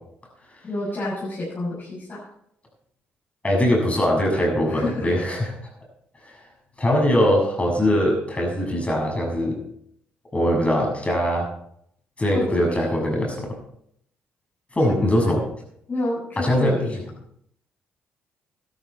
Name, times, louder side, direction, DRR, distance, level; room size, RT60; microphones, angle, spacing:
voice 1, 0.6-2.3 4.7-5.2 12.3-12.9 14.9-15.3 15.9-17.0, left 1 dB, 40° left, -8 dB, 7.1 m, -29 dB
voice 2, 3.4-5.5 6.2-6.4 6.8-9.6 10.3-11.5 12.2-13.6 14.7-15.4 16.4-16.8, left 1 dB, 25° left, 1 dB, 7.1 m, -21 dB
13.0 x 12.5 x 4.3 m, 0.71 s
hypercardioid pair, 50°, 5 cm